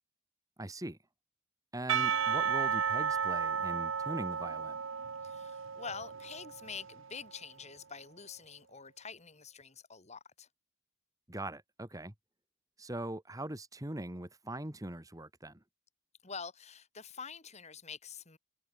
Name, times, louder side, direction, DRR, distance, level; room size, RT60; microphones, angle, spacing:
voice 1, 0.6-1.0 1.7-4.8 11.3-12.1 12.8-15.6, right 1 dB, 15° right, 1.8 m, -41 dB
Percussion / Church bell, 1.9-7.1, right 7 dB, 65° right, 0.8 m, -33 dB
voice 2, 5.2-10.5 16.2-18.4, left 5 dB, 30° left, 2.9 m, -46 dB
head